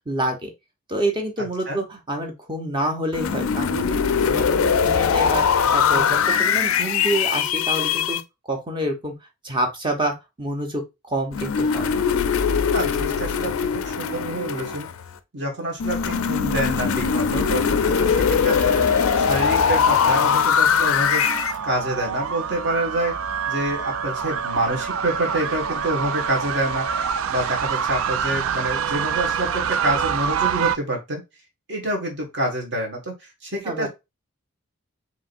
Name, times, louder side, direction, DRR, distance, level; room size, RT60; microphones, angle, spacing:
voice 1, 0.1-0.5 0.9-4.0 4.3-5.4 5.7-8.2 8.5-9.1 9.4-10.8 11.1-11.9 33.6-33.9, right 1 dB, 20° right, 3 dB, 0.9 m, -27 dB
sound 1, 3.1-8.2 11.3-15.1 15.8-21.6, left 6 dB, 75° left, 0.4 m, -21 dB
voice 2, 12.7-14.9 15.3-18.7 19.1-21.3 21.6-23.2 23.5-31.2 31.7-33.9, right 1 dB, 55° right, 1 dB, 1.6 m, -27 dB
sound 2, 17.0-30.8, right 7 dB, 70° right, 0.3 m, -27 dB
4.9 x 3.0 x 2.5 m, 0.23 s
head